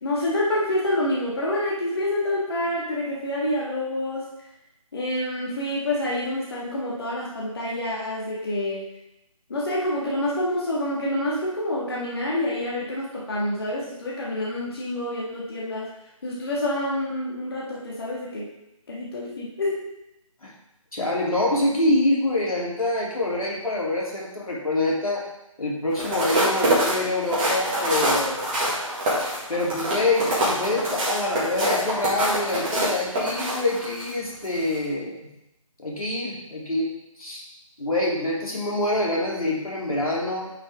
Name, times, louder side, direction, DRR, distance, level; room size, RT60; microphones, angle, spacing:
voice 1, 0.0-4.3 4.9-8.8 9.5-15.9 16.2-18.5 18.9-19.8, left 1 dB, 45° left, -5 dB, 1.9 m, -27 dB
voice 2, 20.9-25.2 25.6-28.4 29.5-35.2 35.8-36.9 37.2-37.4 37.8-40.5, left 2 dB, 85° left, -4 dB, 3.0 m, -25 dB
sound 1, 25.9-34.1 34.6-34.8, right 1 dB, 15° right, 1.8 m, -25 dB
9.3 x 6.1 x 3.6 m, 0.88 s
figure-of-eight pair, 160°, 18 cm